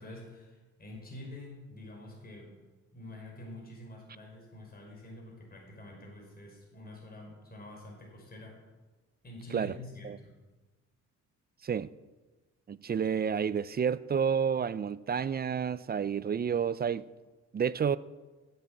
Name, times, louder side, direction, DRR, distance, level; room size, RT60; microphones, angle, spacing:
voice 1, 0.0-2.6 2.9-8.6 9.2-10.4, left 1 dB, 30° left, 5.4 m, -47 dB
voice 2, 12.7-17.0 17.5-18.0, right 7 dB, 30° right, 0.5 m, -30 dB
15.5 x 9.5 x 7.6 m
cardioid pair, 90°, 30 cm